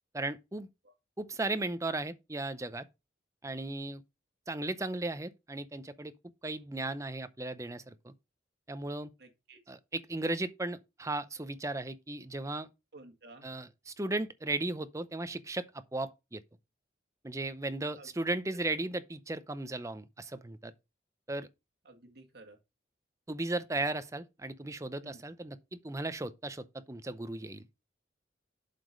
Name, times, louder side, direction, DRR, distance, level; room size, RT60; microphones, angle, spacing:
voice 1, 0.1-0.7 1.2-2.9 3.4-4.0 4.5-6.1 6.4-8.1 8.7-9.1 9.7-12.7 13.4-16.4 17.2-20.7 21.3-21.5 23.3-27.7, right 2 dB, 15° right, 0.6 m, -36 dB
voice 2, 9.2-9.6 12.9-13.5 18.0-18.1 21.9-22.6 25.0-25.2, right 2 dB, 55° right, 2.0 m, -53 dB
7.6 x 5.0 x 5.2 m
head